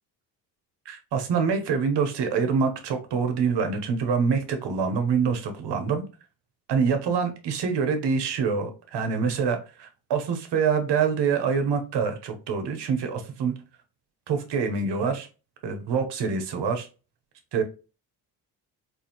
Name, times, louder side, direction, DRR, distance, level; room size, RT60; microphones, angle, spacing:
voice 1, 0.9-6.0 6.7-13.5 14.3-15.3 15.6-16.9 17.5-17.6, right 5 dB, 65° right, 6 dB, 1.0 m, -25 dB
4.2 x 2.5 x 2.9 m, 0.32 s
supercardioid pair, 70°, 44 cm